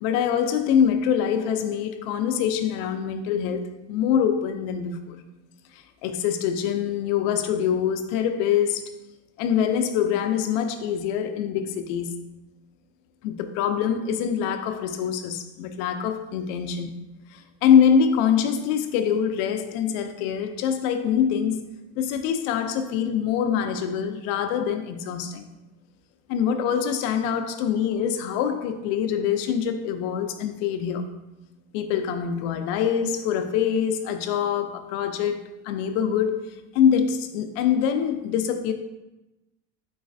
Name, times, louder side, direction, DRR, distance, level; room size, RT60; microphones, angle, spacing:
voice 1, 0.0-5.2 5.7-8.9 9.4-12.2 13.2-16.9 17.3-21.7 22.0-25.5 26.3-31.0 31.7-35.4 35.6-38.7, left 8 dB, 65° left, 0.5 m, -24 dB
4.0 x 3.1 x 2.5 m
cardioid pair, 135°, 38 cm